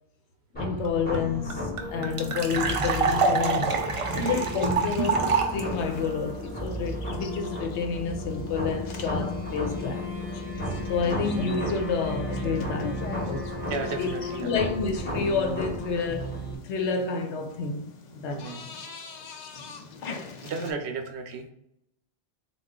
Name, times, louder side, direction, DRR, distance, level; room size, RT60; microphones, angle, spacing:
voice 1, 0.5-3.7 4.1-10.4 10.9-13.5 14.0-14.1 14.4-17.8 18.1-18.5, left 5 dB, 80° left, 0.9 m, -29 dB
sound 1, 0.5-16.5, left 1 dB, 10° left, 0.6 m, -33 dB
sound 2, 0.8-0.9 1.1-1.2 1.5-5.6, right 4 dB, 55° right, 0.4 m, -26 dB
sound 3, 2.8-20.7, left 5 dB, 55° left, 0.5 m, -44 dB
voice 2, 4.0-4.4 13.7-14.5 18.3-18.6 20.4-21.5, right 4 dB, 75° right, 0.8 m, -34 dB
3.7 x 2.3 x 3.5 m
omnidirectional pair, 1.1 m